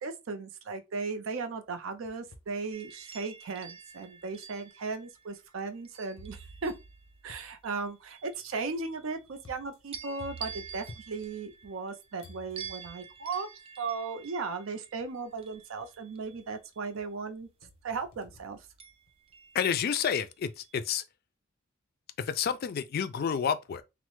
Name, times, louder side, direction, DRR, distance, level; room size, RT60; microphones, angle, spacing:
voice 1, 0.0-6.7 7.2-13.5 13.8-17.5 17.8-18.6, right 4 dB, 80° right, 0.5 m, -36 dB
sound 1, 1.7-2.6 3.2-3.3 4.2-4.3 6.2-11.9 12.2-13.2 14.4-14.5 15.0-15.4 15.8-16.6 17.0-19.3, right 1 dB, 80° left, 0.7 m, -53 dB
sound 2, 2.7-7.1 7.6-9.5 9.9-16.9 18.8-20.2 20.6-20.9, right 6 dB, 30° right, 0.3 m, -48 dB
voice 2, 19.5-21.0 22.2-23.8, left 7 dB, 50° left, 0.3 m, -29 dB
3.1 x 2.0 x 3.0 m
head